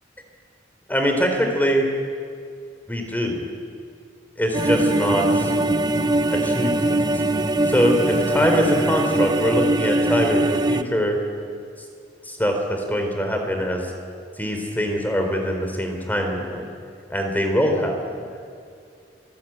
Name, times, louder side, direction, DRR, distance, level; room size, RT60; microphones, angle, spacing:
voice 1, 0.9-1.9 2.9-3.5 4.4-5.5 6.3-7.2 7.7-11.2 12.3-13.9 14.4-16.7 17.1-18.1, equal, 10° left, 3 dB, 4.1 m, -23 dB
sound 1, 4.5-10.8, right 2 dB, 25° right, 0.8 m, -21 dB
26.0 x 19.5 x 9.0 m, 2.3 s
head